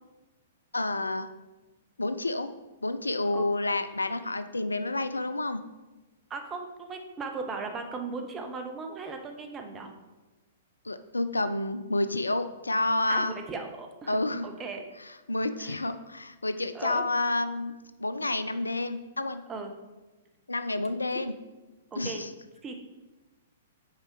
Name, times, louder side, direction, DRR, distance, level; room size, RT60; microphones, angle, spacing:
voice 1, 0.7-1.3 2.0-2.5 2.8-5.6 10.8-13.3 14.1-14.5 15.3-17.7 18.0-19.4 20.5-21.3 22.0-22.3, left 2 dB, 80° left, 11 dB, 0.4 m, -29 dB
voice 2, 6.3-9.9 13.1-14.8 15.6-15.8 16.7-17.0 19.5-19.7 21.9-22.2 22.6-22.7, right 4 dB, 20° right, 4 dB, 0.9 m, -37 dB
5.6 x 4.8 x 4.7 m, 1.1 s
figure-of-eight pair, 110°, 0 cm